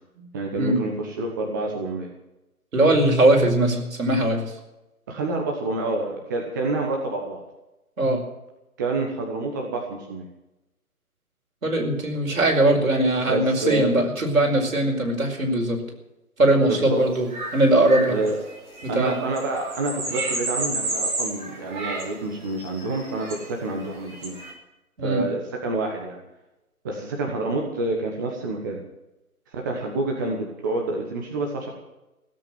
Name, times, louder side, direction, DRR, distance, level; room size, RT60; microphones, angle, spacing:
voice 1, 0.2-2.1 5.1-7.4 8.8-10.3 13.3-14.0 16.6-17.0 18.1-18.4 18.9-24.4 25.0-26.2 26.8-28.8 29.6-31.7, right 2 dB, 15° right, 0 dB, 1.1 m, -28 dB
voice 2, 2.7-4.5 8.0-8.2 11.6-15.8 16.4-17.3 17.5-18.1 18.8-19.2 25.0-25.2, right 1 dB, 60° right, 2 dB, 5.0 m, -20 dB
sound 1, 17.1-24.5, right 2 dB, 30° right, 4.9 m, -31 dB
16.5 x 8.4 x 9.5 m, 0.95 s
figure-of-eight pair, 150°, 45 cm